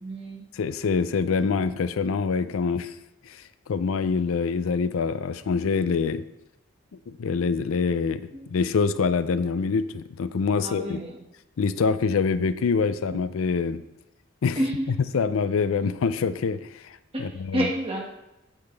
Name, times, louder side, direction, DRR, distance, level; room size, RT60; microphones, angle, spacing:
voice 1, 0.0-0.4 10.6-11.2 13.1-13.2 14.6-14.9 17.1-18.1, right 1 dB, 25° right, -1 dB, 1.6 m, -29 dB
voice 2, 0.5-2.9 3.3-6.3 7.1-11.0 11.6-13.8 14.4-14.6 15.1-17.7, left 5 dB, 85° left, 13 dB, 0.4 m, -25 dB
8.7 x 7.9 x 3.3 m, 0.90 s
head